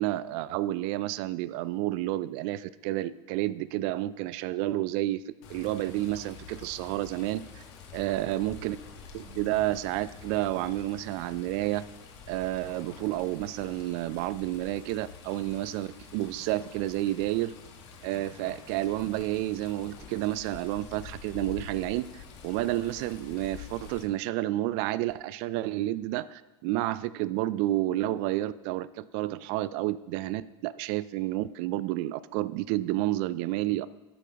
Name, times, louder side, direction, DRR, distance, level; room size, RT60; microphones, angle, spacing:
voice 1, 0.0-5.2 5.5-7.6 7.9-8.8 9.1-11.8 12.3-17.5 18.0-33.9, right 15 dB, 60° right, 17 dB, 0.4 m, -30 dB
Water, 5.4-24.0, left 5 dB, 70° left, 1.7 m, -47 dB
12.0 x 9.3 x 2.9 m, 1.0 s
hypercardioid pair, 85°, 15 cm